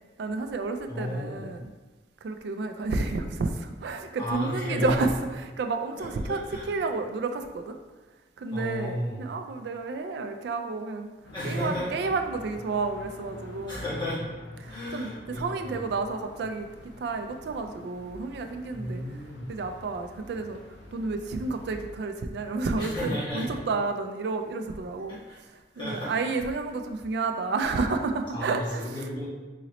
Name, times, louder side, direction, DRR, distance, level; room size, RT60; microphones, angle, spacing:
voice 1, 0.2-1.7 2.2-7.8 8.4-11.1 11.4-13.9 14.6-19.0 19.5-29.0, right 3 dB, 60° right, 6 dB, 0.3 m, -31 dB
voice 2, 0.9-1.4 4.2-5.0 6.3-6.7 8.5-9.2 11.3-11.9 13.7-14.2 14.7-15.8 18.7-19.5 22.8-23.5 25.1-25.4 25.7-26.2 28.3-29.3, left 1 dB, 25° left, -10 dB, 1.4 m, -33 dB
sound 1, 11.2-21.9, left 1 dB, 70° left, 0.5 m, -47 dB
3.9 x 2.9 x 2.9 m, 1.3 s
head